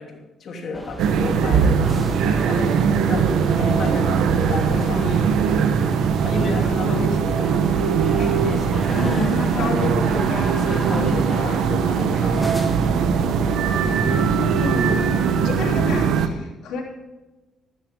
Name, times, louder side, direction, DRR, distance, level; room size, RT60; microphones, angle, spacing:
voice 1, 0.0-3.3 3.6-5.5 6.2-7.5 7.8-9.1 9.5-9.7 10.5-12.5, left 3 dB, 60° left, 2 dB, 3.0 m, -32 dB
sound 1, 0.7-15.9, equal, 5° left, 2.5 m, -35 dB
sound 2, 1.0-16.3, right 6 dB, 85° right, 1.1 m, -20 dB
voice 2, 4.5-5.7 6.5-7.1 8.9-10.5 10.9-11.2 13.8-16.8, left 3 dB, 80° left, 0 dB, 3.4 m, -30 dB
15.5 x 12.5 x 3.8 m, 1.1 s
cardioid pair, 90°, 0 cm